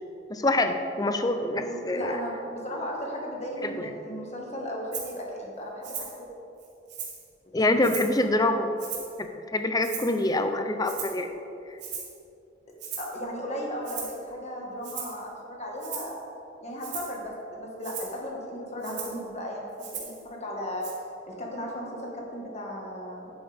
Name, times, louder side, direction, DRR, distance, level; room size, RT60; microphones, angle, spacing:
voice 1, 0.3-2.2 3.6-3.9 7.5-8.7 9.2-11.3, left 2 dB, 20° left, 7 dB, 0.5 m, -25 dB
voice 2, 1.5-6.3 7.4-7.5 13.0-16.1 16.6-20.9 21.3-23.3, equal, 35° left, -2 dB, 1.6 m, -36 dB
Rattle (instrument), 4.9-5.1 5.8-6.2 6.6-7.3 7.8-8.2 8.8-9.2 9.8-10.3 10.8-11.2 11.8-12.2 12.8-13.2 13.8-14.2 14.8-15.2 15.8-16.2 16.8-17.2 17.8-18.1 18.8-19.2 19.8-20.2 20.8-20.9, right 7 dB, 60° right, 1.7 m, -38 dB
11.0 x 7.9 x 3.5 m, 2.8 s
head